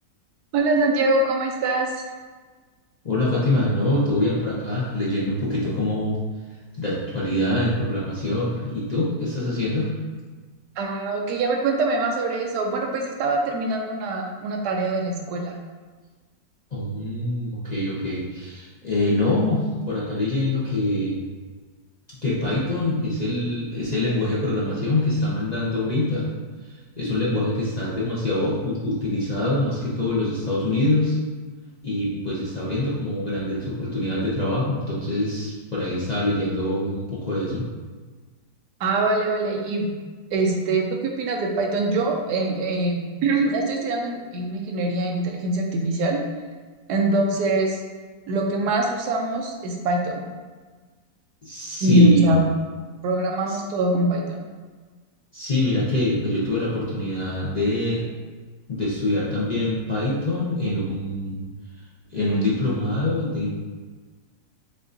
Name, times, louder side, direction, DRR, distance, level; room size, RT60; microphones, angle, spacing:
voice 1, 0.5-2.0 10.8-15.5 38.8-39.9 40.3-46.2 46.9-47.8 48.3-50.2 51.8-52.4 53.0-54.5, right 2 dB, 75° right, 2 dB, 1.2 m, -23 dB
voice 2, 3.0-6.2 6.8-9.9 16.7-21.1 22.2-26.3 26.6-31.2 31.8-37.6 51.4-52.4 53.5-53.6 55.3-58.0 58.7-61.4 62.1-63.5, left 1 dB, 55° left, -8 dB, 0.4 m, -24 dB
6.8 x 2.5 x 2.6 m, 1.4 s
omnidirectional pair, 1.8 m